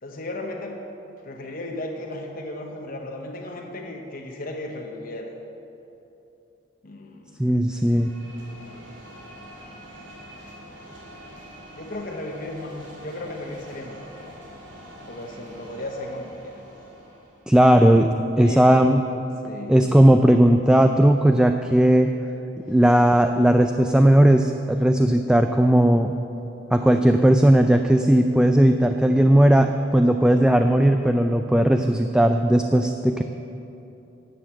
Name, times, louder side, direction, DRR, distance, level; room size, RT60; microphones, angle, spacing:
voice 1, 0.0-0.8 1.2-5.3 6.8-7.4 11.8-14.1 15.1-16.6 18.3-18.7 19.4-19.8 22.6-22.8 30.8-30.9, left 1 dB, 50° left, 2 dB, 0.9 m, -35 dB
voice 2, 7.4-8.1 17.5-19.0 19.7-22.1 22.7-26.2 26.7-33.2, right 1 dB, 5° right, 6 dB, 0.3 m, -17 dB
sound 1, 7.7-17.5, equal, 85° right, 2.5 m, -44 dB
11.0 x 7.8 x 7.6 m, 2.9 s
head